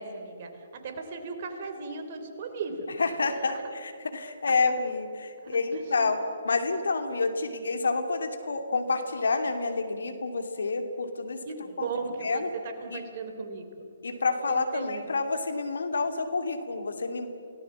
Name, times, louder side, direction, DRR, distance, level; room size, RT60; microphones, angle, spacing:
voice 1, 0.0-2.9 3.3-3.6 5.4-6.1 6.5-6.8 11.4-13.9 14.5-15.0, right 4 dB, 45° right, 6 dB, 3.5 m, -37 dB
voice 2, 3.0-6.2 6.4-11.4 11.8-11.9 12.2-12.5 12.9-13.0 14.0-17.3, left 4 dB, 70° left, 7 dB, 2.6 m, -28 dB
28.5 x 18.5 x 7.4 m, 2.5 s
figure-of-eight pair, 135°, 0 cm